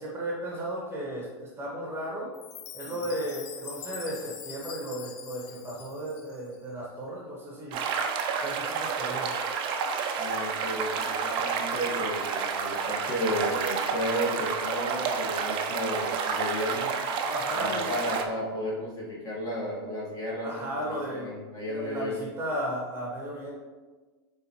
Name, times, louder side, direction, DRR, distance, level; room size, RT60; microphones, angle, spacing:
voice 1, 0.0-2.3 2.7-7.8 8.3-9.3 17.3-17.9 20.4-21.3 21.7-23.5, right 1 dB, 15° right, -3 dB, 1.0 m, -35 dB
Chime, 2.3-6.6, left 7 dB, 50° left, 0.5 m, -44 dB
sound 1, 7.7-18.3, right 6 dB, 40° right, 0.5 m, -30 dB
voice 2, 10.2-16.9 17.5-22.3, equal, 30° left, -5 dB, 1.5 m, -33 dB
4.3 x 3.7 x 2.8 m, 1.3 s
hypercardioid pair, 120°, 14 cm